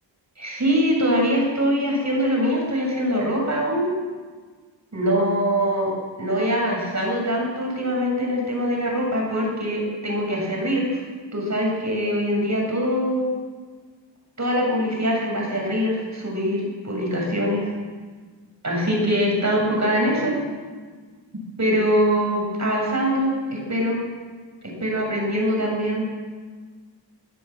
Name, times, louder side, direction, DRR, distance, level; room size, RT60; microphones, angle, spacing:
voice 1, 0.4-3.9 4.9-5.9 6.2-11.0 11.3-13.3 14.4-17.7 18.6-20.4 21.6-24.0 24.6-26.2, equal, 40° right, 0 dB, 7.8 m, -23 dB
24.0 x 16.5 x 7.5 m, 1.5 s
wide cardioid pair, 125°, 44 cm